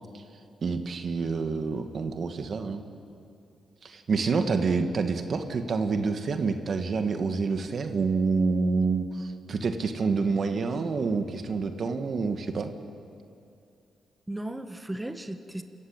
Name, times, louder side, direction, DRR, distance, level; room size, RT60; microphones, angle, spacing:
voice 1, 0.6-2.8 3.8-12.7, right 4 dB, 60° right, 7 dB, 1.8 m, -27 dB
voice 2, 14.3-15.6, right 1 dB, 15° right, 8 dB, 1.5 m, -36 dB
27.5 x 15.0 x 8.9 m, 2.5 s
supercardioid pair, 55°, 0 cm